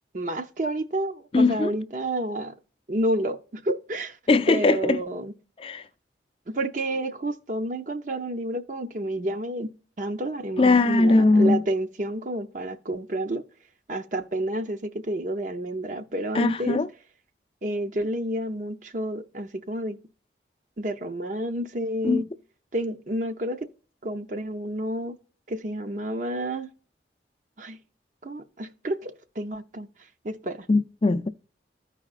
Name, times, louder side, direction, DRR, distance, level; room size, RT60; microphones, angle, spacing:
voice 1, 0.1-2.5 2.9-4.2 4.5-5.3 6.5-9.7 10.0-13.4 13.9-16.8 17.6-20.0 20.8-22.3 22.7-23.7 24.0-25.2 25.5-26.7 27.6-27.8 28.2-29.9 30.2-30.7, right 1 dB, 45° right, 0.6 m, -30 dB
voice 2, 1.3-1.7 4.3-5.0 5.6-5.8 10.6-11.6 16.3-16.9 22.0-22.2 30.7-31.3, left 3 dB, 30° left, 0.4 m, -20 dB
14.5 x 4.9 x 2.4 m
head